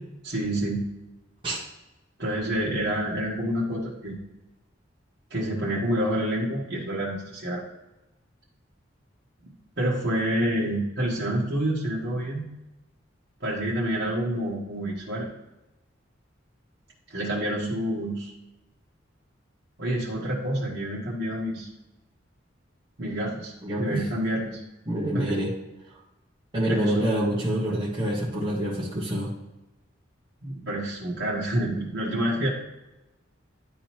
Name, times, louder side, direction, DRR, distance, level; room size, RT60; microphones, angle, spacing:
voice 1, 0.2-0.9 2.2-4.2 5.3-7.6 9.8-12.4 13.4-15.3 17.1-18.3 19.8-21.7 23.0-23.5 23.8-24.6 25.1-25.3 26.7-26.9 30.4-32.5, right 1 dB, 60° right, -7 dB, 1.4 m, -28 dB
voice 2, 23.6-24.0 24.9-25.5 25.9-26.0 26.5-29.3, right 1 dB, 25° right, -8 dB, 1.4 m, -26 dB
10.0 x 3.9 x 3.0 m, 0.98 s
head